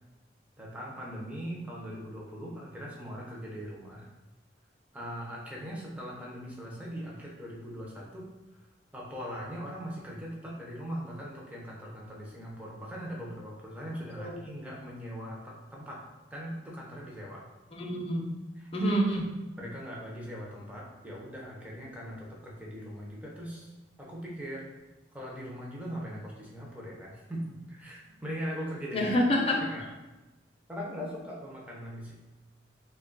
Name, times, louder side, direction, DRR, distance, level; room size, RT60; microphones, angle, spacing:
voice 1, 0.6-4.1 4.9-8.3 8.9-16.0 16.3-17.4 18.6-18.7 19.6-23.7 24.0-24.7 25.1-29.1 29.7-29.8 30.7-32.1, equal, 10° right, -4 dB, 0.6 m, -40 dB
voice 2, 17.7-18.2 18.7-19.4 28.9-29.6, equal, 35° left, -2 dB, 0.6 m, -27 dB
3.2 x 2.3 x 3.8 m, 1.1 s
head